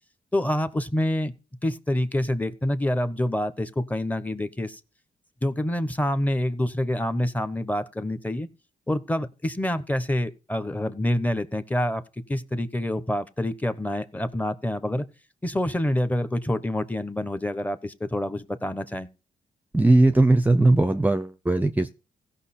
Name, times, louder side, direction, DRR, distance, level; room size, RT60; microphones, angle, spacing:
voice 1, 0.3-1.3 1.6-4.8 5.4-8.5 8.9-12.0 12.3-15.1 15.4-19.1, left 1 dB, 10° left, 1.0 m, -27 dB
voice 2, 19.7-21.9, right 2 dB, 10° right, 0.6 m, -19 dB
16.0 x 5.8 x 4.3 m
cardioid pair, 90°, 15 cm